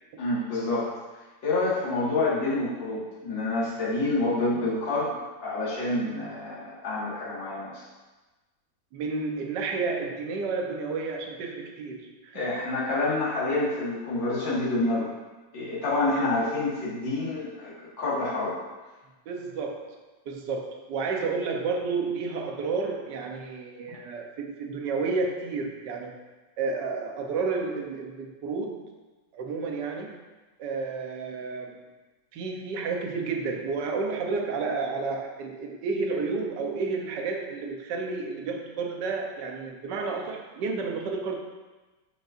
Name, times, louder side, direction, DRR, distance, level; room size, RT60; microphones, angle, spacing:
voice 1, 0.2-0.9 1.4-5.2 5.4-7.8 12.3-15.1 15.5-18.6, left 2 dB, 75° left, -8 dB, 2.6 m, -27 dB
voice 2, 8.9-12.6 16.1-16.3 19.3-19.9 20.3-26.2 26.6-28.9 29.3-30.2 30.6-31.8 32.3-41.4, right 4 dB, 65° right, 1 dB, 1.5 m, -31 dB
10.0 x 5.3 x 2.6 m, 1.2 s
omnidirectional pair, 2.1 m